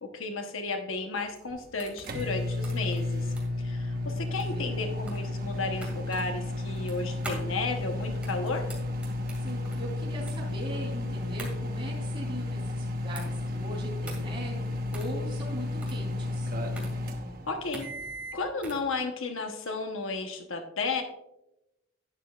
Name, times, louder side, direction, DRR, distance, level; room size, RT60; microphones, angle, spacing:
voice 1, 0.0-3.3 3.6-8.7 17.5-17.9 18.3-21.0, left 3 dB, 80° left, 5 dB, 1.0 m, -33 dB
sound 1, 1.1-18.9, right 1 dB, 5° right, 2.1 m, -45 dB
sound 2, 1.5-18.4, left 2 dB, 45° right, 1.1 m, -33 dB
voice 2, 4.0-4.7 9.3-16.5, right 1 dB, 25° right, -3 dB, 3.3 m, -40 dB
11.5 x 10.0 x 2.4 m, 0.92 s
head